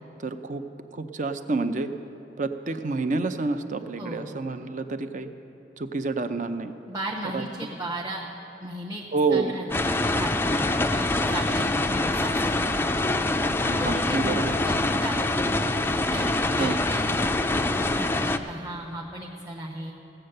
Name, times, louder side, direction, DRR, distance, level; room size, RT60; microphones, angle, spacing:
voice 1, 0.2-0.6 0.9-1.9 2.4-5.3 5.8-6.7 7.3-7.4 9.1-9.6 13.8-14.6 16.6-16.8, right 3 dB, 45° right, 9 dB, 0.6 m, -28 dB
voice 2, 4.0-4.4 6.9-8.2 8.6-13.1 13.6-17.2 17.5-19.9, right 1 dB, 20° right, -3 dB, 0.9 m, -36 dB
sound 1, 9.7-18.4, left 2 dB, 10° left, 0.3 m, -25 dB
16.5 x 7.8 x 6.6 m, 2.9 s
head